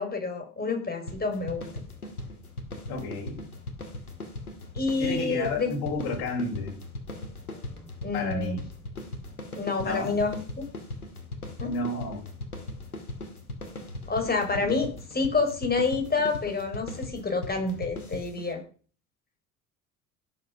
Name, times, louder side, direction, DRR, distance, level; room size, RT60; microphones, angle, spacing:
voice 1, 0.0-1.7 4.7-5.7 8.0-8.6 9.5-10.6 11.6-11.7 14.1-18.6, left 4 dB, 20° left, 5 dB, 5.6 m, -28 dB
sound 1, 1.1-18.5, left 2 dB, 90° left, 2.2 m, -39 dB
voice 2, 2.9-3.4 5.0-6.7 8.1-8.6 9.8-10.2 11.6-12.2 14.6-14.8, left 2 dB, 55° left, 1 dB, 6.4 m, -32 dB
16.5 x 8.2 x 6.1 m, 0.42 s
figure-of-eight pair, 65°, 43 cm